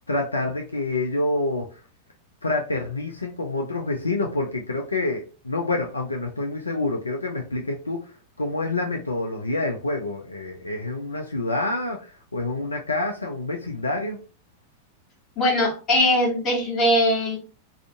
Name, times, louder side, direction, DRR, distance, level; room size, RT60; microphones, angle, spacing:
voice 1, 0.1-1.8 2.4-8.1 8.4-14.2, left 2 dB, 80° left, 2 dB, 0.4 m, -27 dB
voice 2, 15.4-17.4, left 1 dB, 30° left, -2 dB, 1.2 m, -21 dB
2.4 x 2.4 x 2.5 m, 0.34 s
figure-of-eight pair, 90°, 0 cm